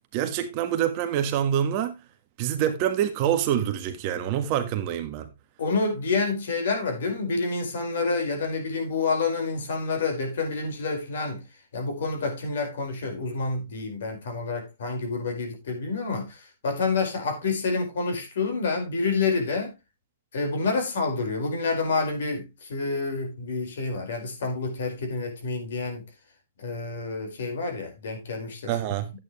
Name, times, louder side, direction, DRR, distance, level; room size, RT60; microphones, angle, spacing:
voice 1, 0.1-1.9 2.4-5.3 28.7-29.1, right 10 dB, 35° right, 1.5 m, -26 dB
voice 2, 5.6-11.4 11.7-16.4 16.6-19.7 20.3-26.0 26.6-28.7, left 4 dB, 70° left, 4.9 m, -28 dB
11.0 x 9.0 x 3.2 m
hypercardioid pair, 160°, 0 cm